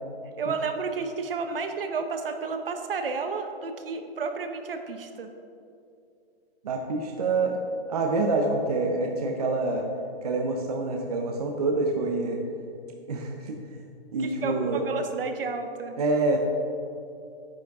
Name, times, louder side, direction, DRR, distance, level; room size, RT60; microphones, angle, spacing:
voice 1, 0.4-5.3 14.2-16.0, right 4 dB, 60° right, 7 dB, 0.9 m, -31 dB
voice 2, 6.6-7.6 7.9-9.9 10.2-12.4 13.1-13.6 14.1-14.8 16.0-16.4, right 3 dB, 40° right, 2 dB, 0.6 m, -26 dB
9.5 x 8.5 x 3.5 m, 2.5 s
hypercardioid pair, 180°, 31 cm